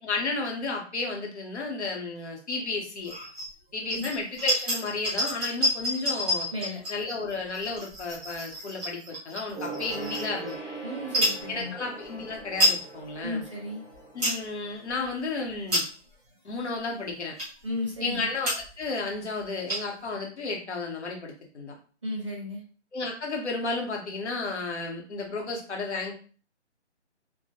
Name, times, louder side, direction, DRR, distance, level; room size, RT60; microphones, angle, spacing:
voice 1, 0.0-3.1 3.7-6.5 6.9-10.6 11.5-13.4 14.1-15.8 16.4-17.3 18.0-21.8 22.9-26.1, left 3 dB, 70° left, 1 dB, 1.0 m, -33 dB
sound 1, 3.0-3.5 3.9-10.6 11.0-11.4 12.0-12.1 12.4-12.8 13.3-13.4 13.8-14.4 14.9-15.1 15.5-16.1 16.7-16.8 17.4-17.7 18.1-18.2 18.4-18.8 19.1-19.2 19.4-20.1, equal, 5° right, 0.9 m, -29 dB
Gong, 9.5-15.4 15.7-15.8, right 3 dB, 25° left, 0.5 m, -41 dB
voice 2, 10.8-11.7 13.2-13.8 17.6-18.3 22.0-22.6, left 1 dB, 25° right, -3 dB, 0.6 m, -34 dB
2.2 x 2.1 x 2.8 m, 0.38 s
hypercardioid pair, 170°, 35 cm